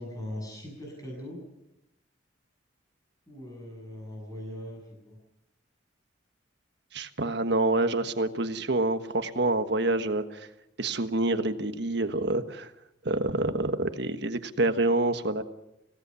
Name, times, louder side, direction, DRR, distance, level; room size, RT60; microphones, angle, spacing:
voice 1, 0.0-1.4 3.3-5.2, left 1 dB, 20° left, 0 dB, 7.6 m, -40 dB
voice 2, 6.9-10.5 10.8-12.7 13.0-15.4, right 2 dB, 60° right, 9 dB, 1.4 m, -27 dB
26.0 x 17.5 x 7.1 m, 0.87 s
head